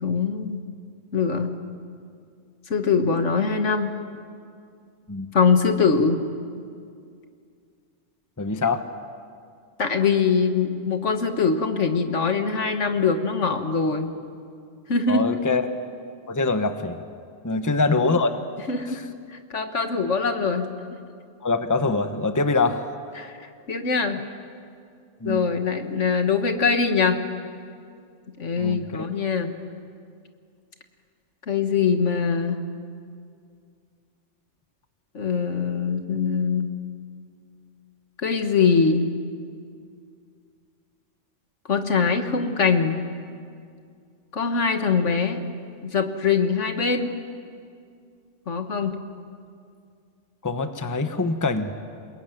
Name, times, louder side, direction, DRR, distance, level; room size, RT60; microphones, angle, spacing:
voice 1, 0.0-0.6 1.1-1.5 2.7-3.9 5.3-6.2 9.8-14.1 14.9-15.4 17.5-17.6 18.7-19.0 19.3-20.7 23.2-24.2 25.2-27.2 28.4-29.5 31.5-32.6 35.1-36.7 38.2-39.1 41.7-43.0 44.3-45.4 45.8-47.1 48.5-49.0, left 5 dB, 70° left, 6 dB, 1.9 m, -23 dB
voice 2, 8.4-8.8 15.1-15.7 16.3-17.0 17.4-18.3 21.4-22.9 25.2-25.4 28.6-29.0 50.4-51.7, left 3 dB, 15° left, 8 dB, 1.1 m, -24 dB
28.0 x 21.5 x 9.3 m, 2.3 s
omnidirectional pair, 1.3 m